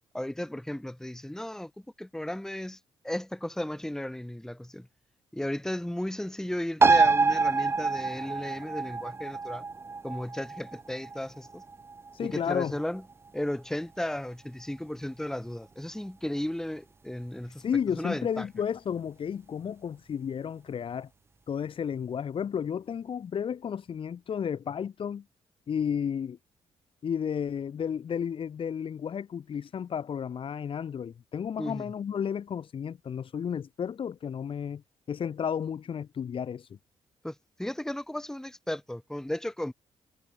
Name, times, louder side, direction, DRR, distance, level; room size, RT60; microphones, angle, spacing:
voice 1, 0.1-1.7 2.0-2.8 3.0-4.9 5.3-9.6 10.0-11.6 12.2-13.0 13.3-17.7 17.9-18.5 31.6-31.9 37.2-39.7, left 1 dB, 5° left, 1.3 m, -35 dB
sound 1, 6.8-13.8 14.1-14.2, right 4 dB, 25° right, 0.4 m, -27 dB
voice 2, 12.1-12.7 17.6-21.1 21.5-25.2 25.7-26.4 27.0-34.8 35.1-36.7, left 7 dB, 55° left, 1.5 m, -32 dB
cardioid pair, 70°, 11 cm